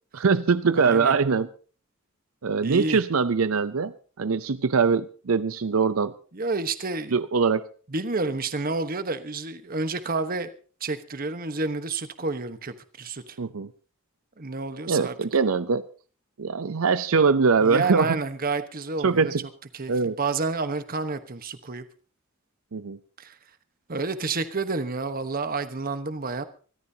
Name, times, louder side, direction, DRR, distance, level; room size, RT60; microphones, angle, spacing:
voice 1, 0.1-1.5 2.4-6.1 7.1-7.6 13.4-13.7 14.9-15.8 16.4-18.2 19.0-19.4 19.9-20.2 22.7-23.0, right 5 dB, 85° right, 13 dB, 0.6 m, -22 dB
voice 2, 0.7-1.1 2.6-3.0 6.3-7.2 7.9-10.5 10.8-13.4 14.4-15.1 17.6-19.3 19.7-21.8 23.2-23.4 23.9-26.4, right 3 dB, 45° right, 10 dB, 1.2 m, -29 dB
24.5 x 13.5 x 2.8 m, 0.39 s
head